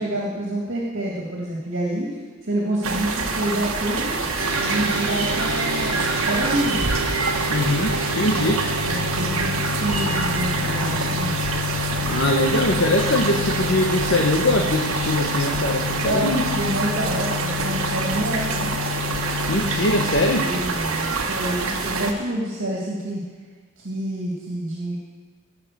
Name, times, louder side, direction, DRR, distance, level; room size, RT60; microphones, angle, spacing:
voice 1, 0.0-2.2 2.4-4.1 4.6-6.8 8.3-8.5 8.9-11.4 16.0-18.7 20.4-23.3 23.8-25.0, right 1 dB, 65° right, -4 dB, 2.2 m, -27 dB
sound 1, 2.8-22.1, right 4 dB, 90° right, 1.3 m, -26 dB
sound 2, 4.4-20.3, left 4 dB, 40° right, 2.9 m, -29 dB
voice 2, 7.5-8.6 12.1-16.5 19.5-20.5, left 1 dB, 60° left, 1 dB, 1.1 m, -22 dB
17.5 x 5.9 x 6.7 m, 1.5 s
head